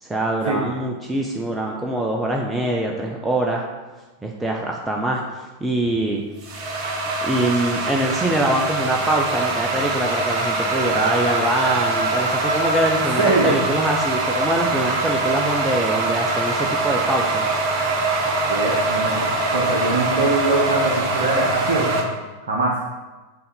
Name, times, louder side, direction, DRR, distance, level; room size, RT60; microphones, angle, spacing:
voice 1, 0.0-3.7 4.2-6.2 7.2-17.6, right 1 dB, 10° right, 0 dB, 0.7 m, -24 dB
sound 1, 5.9-22.0, right 2 dB, 40° right, 1.1 m, -23 dB
Wind instrument woodwind instrument, 8.5-13.2, equal, 85° right, 0.6 m, -30 dB
voice 2, 13.2-13.5 18.5-22.1 22.4-22.7, right 2 dB, 65° right, -3 dB, 1.0 m, -22 dB
6.9 x 4.0 x 5.3 m, 1.2 s
figure-of-eight pair, 90°, 0 cm